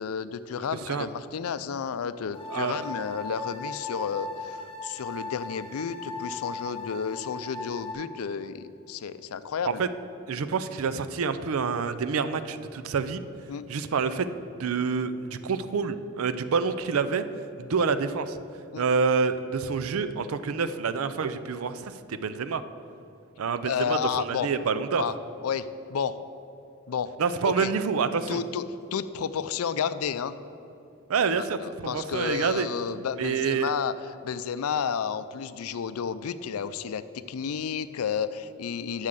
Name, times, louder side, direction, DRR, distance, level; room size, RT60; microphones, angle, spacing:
voice 1, 0.0-9.8 13.5-13.6 18.7-18.8 23.6-24.5 25.0-25.1 25.4-26.2 26.9-27.1 27.4-27.7 28.3-28.6 28.9-30.3 31.4-33.9 34.2-37.0 37.3-39.1, left 7 dB, 85° left, 14 dB, 0.4 m, -31 dB
sound 1, 2.3-7.9, left 3 dB, 25° left, 0.9 m, -38 dB
voice 2, 2.5-2.8 9.6-9.9 10.3-13.2 13.7-14.3 14.6-17.2 17.6-18.4 18.8-22.6 23.4-25.0 27.2-28.4 31.1-32.7 33.2-33.7, right 5 dB, 75° right, 12 dB, 0.5 m, -27 dB
7.6 x 6.4 x 7.4 m, 2.7 s
head